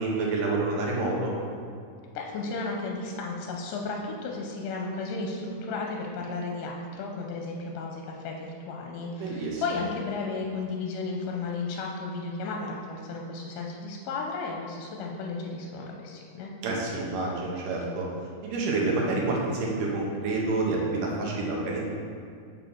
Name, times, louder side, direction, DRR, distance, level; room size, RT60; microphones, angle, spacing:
voice 1, 0.0-1.3 9.2-9.6 16.6-18.1 18.4-21.8, right 3 dB, 80° right, -2 dB, 2.7 m, -28 dB
voice 2, 2.1-16.5, left 3 dB, 80° left, 0 dB, 2.2 m, -34 dB
6.1 x 5.4 x 4.4 m, 2.3 s
omnidirectional pair, 3.7 m